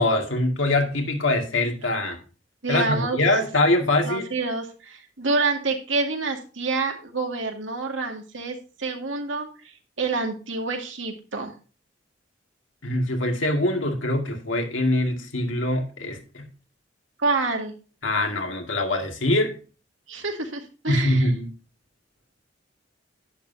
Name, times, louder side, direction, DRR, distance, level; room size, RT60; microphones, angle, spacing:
voice 1, 0.0-2.2 2.7-4.3 12.8-16.5 18.0-19.6 20.9-21.5, left 1 dB, 85° left, 2.2 m, -23 dB
voice 2, 2.6-3.2 4.1-11.5 17.2-17.7 20.1-21.3, right 3 dB, 85° right, 2.1 m, -28 dB
11.0 x 9.5 x 2.8 m
head